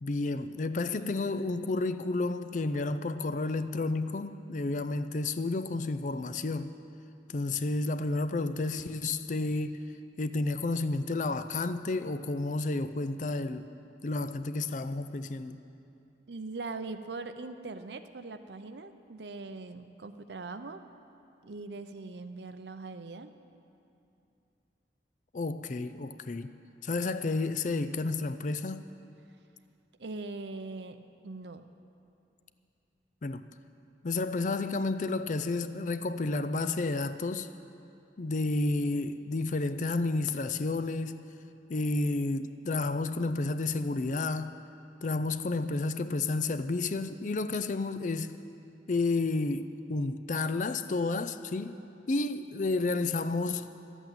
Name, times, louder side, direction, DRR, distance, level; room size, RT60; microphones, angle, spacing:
voice 1, 0.0-6.7 7.3-9.8 10.2-13.7 14.0-15.6 25.3-26.5 26.8-28.8 33.2-33.4 34.0-37.5 38.2-41.2 41.7-44.6 45.0-48.4 48.9-51.8 52.1-53.7, left 3 dB, 45° left, 0.4 m, -31 dB
voice 2, 16.3-20.8 21.4-23.3 30.0-31.6, right 3 dB, 75° right, 0.7 m, -41 dB
12.5 x 8.1 x 9.0 m
head